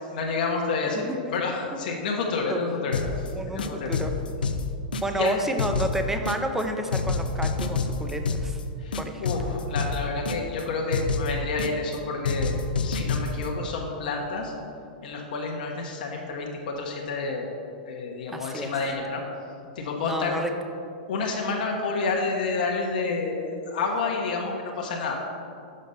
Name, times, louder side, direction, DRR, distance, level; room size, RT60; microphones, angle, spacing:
voice 1, 0.1-3.9 5.1-5.3 8.8-14.5 15.0-17.5 17.8-19.2 19.7-20.4 21.1-25.2, left 4 dB, 65° left, 0 dB, 1.0 m, -29 dB
voice 2, 0.9-1.3 2.5-2.6 3.3-4.1 5.0-8.6 9.0-9.3 18.3-18.7 20.0-20.5, right 1 dB, 5° right, 5 dB, 0.6 m, -30 dB
sound 1, 2.9-3.3 3.6-5.3 5.6-6.6 6.9-8.6 8.9-10.6 10.9-12.0 12.2-13.5, left 4 dB, 85° left, 0.5 m, -28 dB
6.5 x 5.2 x 5.4 m, 2.4 s
hypercardioid pair, 115°, 5 cm